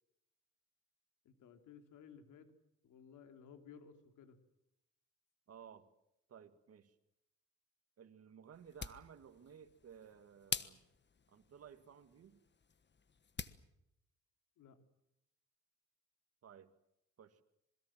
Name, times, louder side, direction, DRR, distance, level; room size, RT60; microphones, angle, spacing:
voice 1, 1.2-2.5 2.8-4.4 14.6-14.8, left 7 dB, 80° left, 7 dB, 3.4 m, -57 dB
voice 2, 5.5-5.9 6.3-6.9 8.0-10.8 11.3-12.4 16.4-16.7 17.2-17.4, right 8 dB, 50° right, 8 dB, 2.1 m, -57 dB
sound 1, 8.5-13.6, left 6 dB, 35° left, 1.4 m, -47 dB
27.0 x 21.5 x 7.6 m, 0.85 s
cardioid pair, 90°, 30 cm